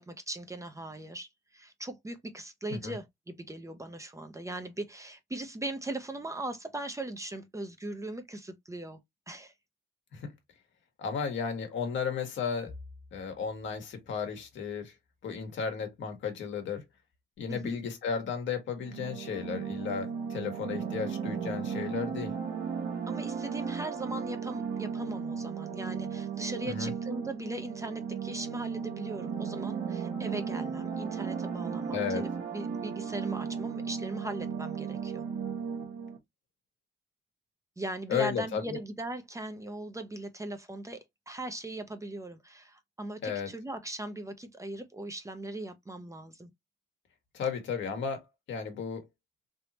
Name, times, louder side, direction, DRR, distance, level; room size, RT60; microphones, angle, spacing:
voice 1, 0.0-9.0 9.3-9.5 17.5-17.8 23.1-35.2 37.8-46.5, right 1 dB, 15° right, 0.7 m, -39 dB
voice 2, 11.0-12.7 13.1-14.9 15.2-16.8 17.4-22.3 26.6-26.9 31.9-32.2 38.1-38.8 43.2-43.5 47.3-49.0, left 6 dB, 70° left, 1.4 m, -34 dB
sound 1, 18.8-36.2, right 6 dB, 75° right, 1.0 m, -35 dB
3.4 x 2.8 x 2.8 m
cardioid pair, 90°, 20 cm